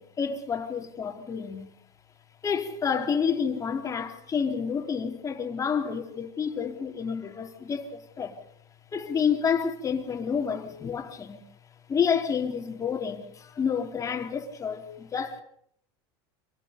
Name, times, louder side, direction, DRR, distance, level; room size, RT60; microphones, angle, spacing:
voice 1, 0.0-1.7 2.4-8.4 8.9-11.4 11.9-15.4, left 6 dB, 25° left, 3.6 m, -29 dB
27.0 x 18.5 x 5.3 m
supercardioid pair, 125°, 14 cm